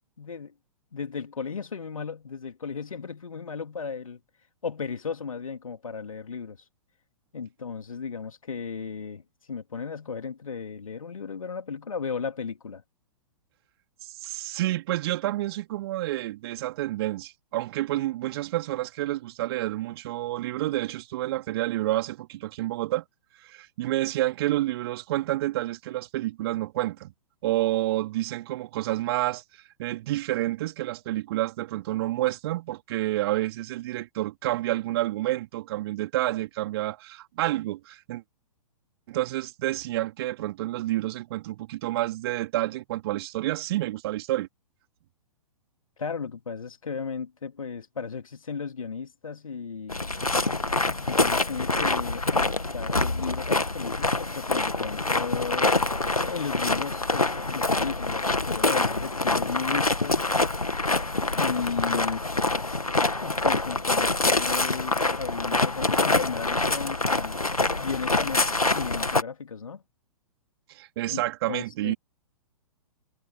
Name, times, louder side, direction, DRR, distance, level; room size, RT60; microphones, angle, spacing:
voice 1, 0.2-0.5 0.9-4.2 4.6-6.6 7.3-9.2 9.5-12.8 46.0-50.0 51.0-55.7 56.3-60.3 61.3-62.2 63.2-67.4 67.8-69.8 71.1-71.2 71.5-71.9, left 5 dB, 70° left, 2.7 m, -35 dB
voice 2, 14.0-23.0 23.4-27.1 27.4-29.4 29.8-38.2 39.1-44.5 70.7-71.9, right 16 dB, 45° right, 3.8 m, -29 dB
sound 1, 49.9-69.2, left 2 dB, 85° left, 2.2 m, -25 dB
figure-of-eight pair, 115°, 18 cm